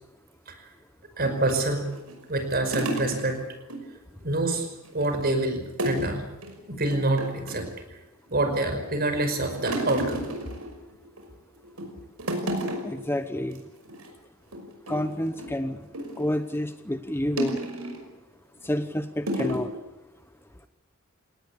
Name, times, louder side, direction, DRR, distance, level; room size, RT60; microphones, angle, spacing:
voice 1, 1.2-1.9 2.3-3.4 4.2-4.7 4.9-6.2 6.7-7.7 8.3-10.3, right 2 dB, 45° right, 8 dB, 5.3 m, -26 dB
sound 1, 1.2-3.8 4.1-4.3 4.6-5.2 5.8-6.1 6.4-6.6 6.9-7.7 8.3-8.8 9.1-11.3 11.6-11.9 12.2-13.1 13.4-13.6 13.9-14.1 14.5-16.3 17.4-18.1 18.6-18.8 19.3-19.7, right 1 dB, 90° right, 5.8 m, -32 dB
voice 2, 12.8-13.6 14.9-15.8 16.2-17.6 18.7-19.7, left 1 dB, 10° left, 10 dB, 0.9 m, -29 dB
29.0 x 18.5 x 8.5 m, 1.0 s
head